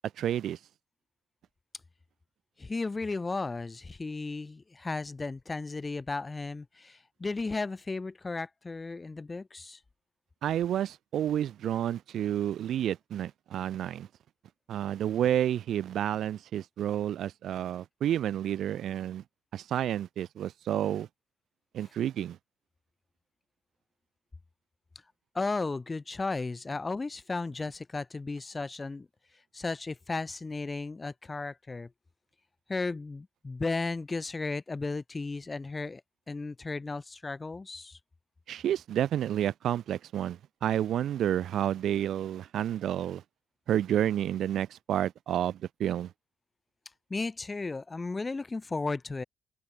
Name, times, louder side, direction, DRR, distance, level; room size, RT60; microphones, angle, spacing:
voice 1, 0.2-0.6 10.4-14.1 14.7-19.2 19.5-21.1 21.7-22.4 38.5-43.2 43.7-46.1, right 11 dB, 70° right, 1.5 m, -30 dB
voice 2, 2.6-9.8 25.3-29.1 29.5-31.9 32.7-36.0 36.3-38.0 47.1-49.2, left 3 dB, 25° left, 4.0 m, -34 dB
open air
cardioid pair, 90°, 0 cm